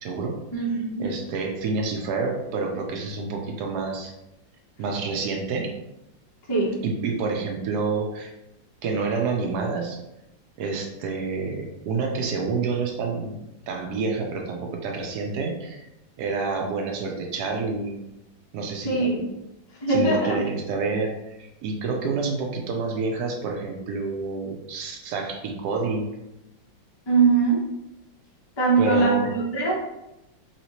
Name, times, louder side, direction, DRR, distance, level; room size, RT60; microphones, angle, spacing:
voice 1, 0.0-0.7 1.0-4.1 4.8-5.7 6.8-8.3 8.8-10.0 10.6-13.4 13.7-15.8 16.2-18.0 18.5-19.1 19.9-26.2 28.8-29.3, right 4 dB, 70° right, 2 dB, 1.0 m, -28 dB
voice 2, 0.5-1.0 6.5-6.8 18.8-19.3 19.8-20.4 27.1-27.6 28.6-29.7, right 4 dB, 35° left, -6 dB, 0.4 m, -21 dB
3.1 x 2.9 x 2.9 m, 0.90 s
omnidirectional pair, 2.0 m